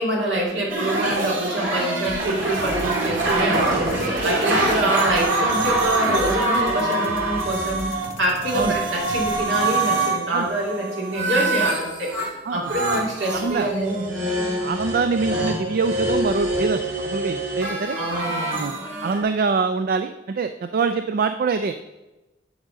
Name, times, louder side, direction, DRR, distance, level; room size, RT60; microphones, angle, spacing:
voice 1, 0.0-7.9 8.2-12.1 12.5-14.3 17.9-18.7, right 1 dB, 70° right, -3 dB, 2.9 m, -25 dB
sound 1, 0.7-8.1 8.4-12.3 12.6-19.2, right 2 dB, 90° right, 2.3 m, -25 dB
sound 2, 2.0-10.0, left 1 dB, 90° left, 1.3 m, -38 dB
voice 2, 13.3-13.7 14.6-18.0 18.5-18.7 19.0-21.8, right 4 dB, 50° right, 9 dB, 0.4 m, -24 dB
8.8 x 5.1 x 6.5 m, 1.0 s
head